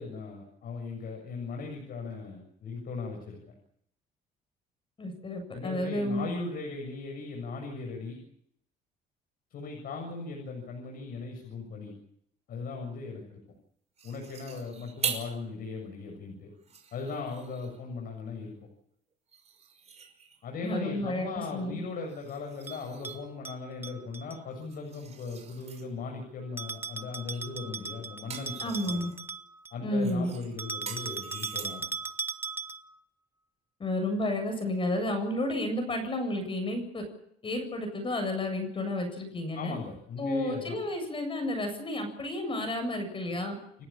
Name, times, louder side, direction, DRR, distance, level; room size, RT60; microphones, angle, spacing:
voice 1, 0.0-3.4 5.5-8.2 9.5-11.9 12.5-13.4 14.0-16.5 16.9-18.5 20.4-29.0 29.7-31.9 39.5-40.8, left 4 dB, 60° left, 2 dB, 7.2 m, -38 dB
voice 2, 5.0-6.3 20.6-21.8 28.6-29.1 29.8-30.3 33.8-37.0 37.4-39.8 40.2-43.6, left 1 dB, 30° left, 5 dB, 7.7 m, -31 dB
sound 1, 14.0-15.4 15.9-16.0 16.5-17.8 19.3-20.5 22.1-23.3 24.5-25.9 27.3-27.6 27.9-29.2 30.0-32.0, right 6 dB, 40° right, 5.7 m, -42 dB
Bell, 22.7-24.4 26.6-29.8 30.6-33.0, right 4 dB, 10° right, 1.2 m, -38 dB
29.5 x 14.5 x 8.8 m, 0.71 s
cardioid pair, 110°, 17 cm